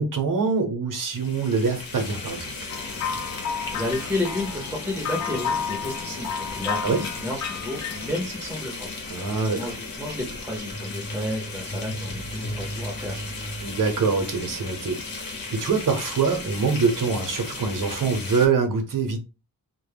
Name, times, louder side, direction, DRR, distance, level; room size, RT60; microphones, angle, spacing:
voice 1, 0.0-2.5 6.8-7.0 9.1-9.7 13.6-15.0 15.5-19.2, right 5 dB, 60° right, 5 dB, 0.8 m, -24 dB
sound 1, 1.0-18.5, left 3 dB, 70° left, 0.9 m, -36 dB
sound 2, 2.7-8.2, left 6 dB, 50° left, 0.4 m, -32 dB
voice 2, 3.3-13.3, left 1 dB, 5° right, 0 dB, 0.6 m, -32 dB
sound 3, 10.7-15.2 15.4-15.5, right 1 dB, 35° left, 0.9 m, -36 dB
2.2 x 2.0 x 3.3 m, 0.29 s
wide cardioid pair, 95°, 36 cm